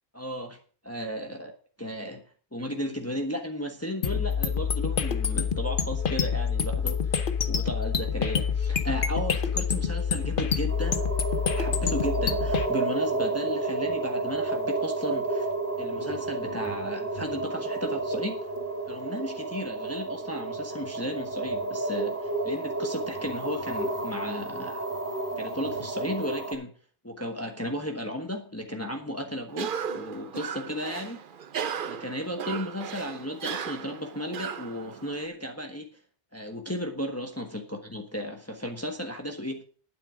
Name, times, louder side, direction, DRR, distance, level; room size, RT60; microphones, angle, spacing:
voice 1, 0.1-0.6 0.8-1.5 1.8-2.2 2.5-11.0 11.5-15.5 15.8-18.5 18.9-24.8 25.4-26.7 27.0-31.2 31.9-35.9 36.3-39.6, equal, 15° left, 3 dB, 1.2 m, -34 dB
sound 1, 4.0-12.7, left 6 dB, 60° left, 1.1 m, -27 dB
sound 2, 10.7-26.5, right 3 dB, 15° right, 3.4 m, -31 dB
Cough, 29.5-35.3, right 7 dB, 60° right, 0.9 m, -36 dB
11.5 x 9.5 x 5.0 m, 0.43 s
omnidirectional pair, 1.0 m